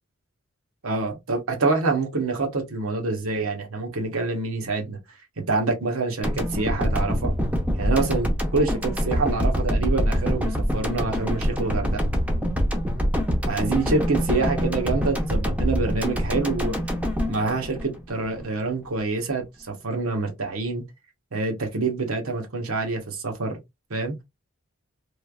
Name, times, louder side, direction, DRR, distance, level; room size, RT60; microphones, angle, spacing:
voice 1, 0.8-5.0 5.4-7.3 7.8-12.0 13.5-16.8 17.3-20.8 21.3-23.6 23.9-24.1, right 3 dB, 75° right, 1.0 m, -26 dB
sound 1, 6.2-18.4, equal, 5° right, 0.6 m, -25 dB
3.2 x 2.4 x 2.3 m
head